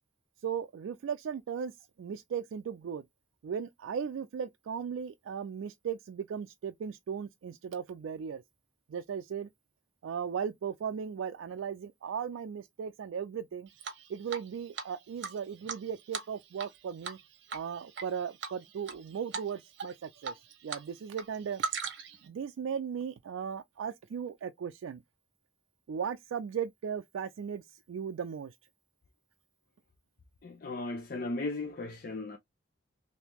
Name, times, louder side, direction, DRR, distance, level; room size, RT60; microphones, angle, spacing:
voice 1, 0.4-1.7 2.0-3.0 3.4-8.4 8.9-9.5 10.0-13.7 14.1-17.2 17.5-20.3 20.6-21.6 22.2-25.0 25.9-28.5, right 7 dB, 80° right, 0.3 m, -37 dB
Drip, 13.8-14.5 14.8-14.9 15.2-16.8 17.0-17.2 17.5-18.0 18.4-19.0 19.3-19.5 19.8-20.8 21.1-22.2, right 5 dB, 60° right, 0.8 m, -38 dB
voice 2, 30.4-32.4, left 2 dB, 45° left, 0.4 m, -36 dB
3.4 x 2.7 x 2.9 m
head